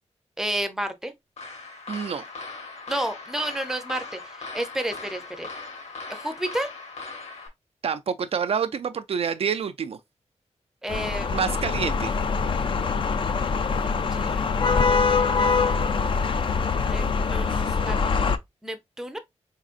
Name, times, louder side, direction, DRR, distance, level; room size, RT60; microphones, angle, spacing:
voice 1, 0.4-1.1 2.9-5.5 6.1-6.7 10.8-11.3 14.1-15.9 16.8-18.0 18.6-19.2, right 1 dB, 5° right, 0.5 m, -32 dB
sound 1, 1.4-7.5, left 4 dB, 65° left, 1.4 m, -39 dB
voice 2, 1.9-2.2 7.8-10.0 11.3-12.1, right 6 dB, 55° right, 0.3 m, -27 dB
sound 2, 10.9-18.4, left 5 dB, 45° left, 0.4 m, -24 dB
4.0 x 3.8 x 2.4 m
wide cardioid pair, 180°, 12 cm